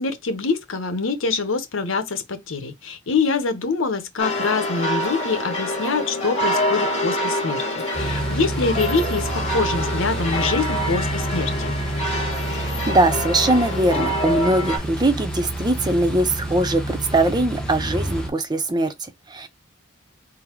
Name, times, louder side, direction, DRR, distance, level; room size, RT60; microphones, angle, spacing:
voice 1, 0.0-7.6 7.9-11.7, left 4 dB, 85° left, 0.9 m, -25 dB
sound 1, 4.2-14.8, left 1 dB, 30° left, 1.6 m, -26 dB
sound 2, 7.9-18.3, right 1 dB, 5° left, 0.9 m, -28 dB
voice 2, 12.5-19.5, right 2 dB, 20° right, 0.6 m, -21 dB
3.9 x 2.1 x 4.4 m
head